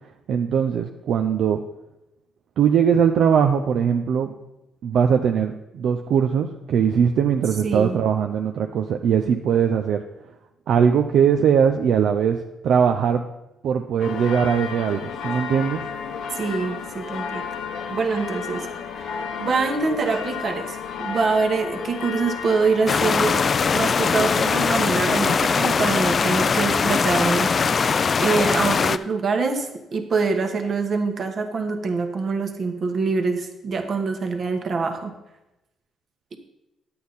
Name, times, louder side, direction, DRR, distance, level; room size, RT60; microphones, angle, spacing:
voice 1, 0.3-1.6 2.6-4.3 4.8-10.0 10.7-13.2 13.6-15.8, right 7 dB, 70° right, 5 dB, 0.5 m, -20 dB
voice 2, 7.6-8.0 16.3-17.4 17.9-18.7 19.0-23.4 23.7-27.9 28.2-35.1, right 4 dB, 50° right, 5 dB, 1.3 m, -25 dB
sound 1, 14.0-24.6, left 6 dB, 75° left, 0.9 m, -32 dB
sound 2, 22.9-29.0, left 5 dB, 45° left, 0.3 m, -21 dB
9.6 x 8.5 x 4.1 m, 0.95 s
cardioid pair, 90°, 0 cm